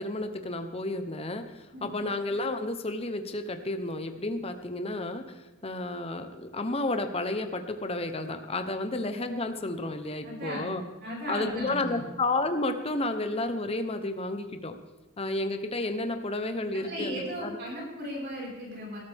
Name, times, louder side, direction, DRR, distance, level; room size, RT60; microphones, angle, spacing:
voice 1, 0.0-10.8 11.3-14.7 15.2-17.6, left 2 dB, 30° left, 7 dB, 0.9 m, -31 dB
voice 2, 10.2-10.7 11.0-12.0 16.7-19.0, equal, 50° right, -3 dB, 5.2 m, -36 dB
20.0 x 13.0 x 3.6 m, 1.1 s
head